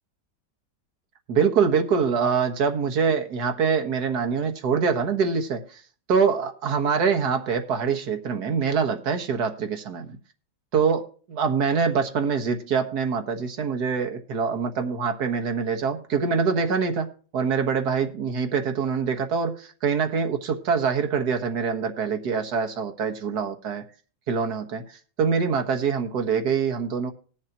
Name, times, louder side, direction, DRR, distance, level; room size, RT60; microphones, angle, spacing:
voice 1, 1.3-5.6 6.1-10.2 10.7-23.8 24.3-24.8 25.2-27.1, right 6 dB, 65° right, 5 dB, 1.9 m, -24 dB
20.0 x 7.4 x 2.9 m, 0.40 s
omnidirectional pair, 1.9 m